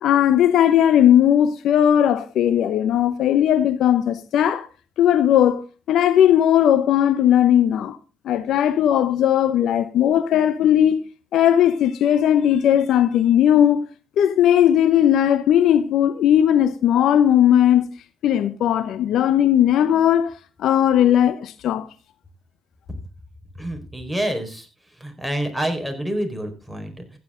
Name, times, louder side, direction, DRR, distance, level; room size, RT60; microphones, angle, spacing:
voice 1, 0.0-4.7 5.0-5.6 5.9-8.0 8.2-11.0 11.3-13.9 14.2-17.8 18.2-21.9, left 10 dB, 75° left, 0.8 m, -17 dB
voice 2, 23.6-24.7 25.0-27.2, right 1 dB, 5° left, 4.6 m, -27 dB
15.0 x 9.7 x 3.8 m
supercardioid pair, 65°, 0 cm